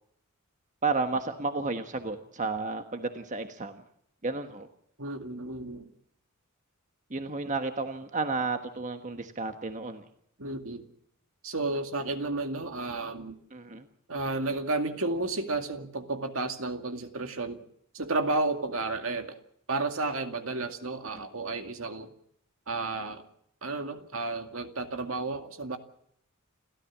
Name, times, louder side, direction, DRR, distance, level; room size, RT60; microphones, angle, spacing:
voice 1, 0.8-3.7 4.2-4.7 7.1-10.0 13.5-13.9, right 3 dB, 35° right, 7 dB, 1.3 m, -32 dB
voice 2, 5.0-5.9 10.4-10.8 11.4-13.4 14.1-17.6 17.9-19.4 19.7-22.1 22.7-23.2 23.6-25.8, right 2 dB, 65° right, 6 dB, 2.2 m, -32 dB
29.5 x 13.5 x 7.3 m, 0.71 s
head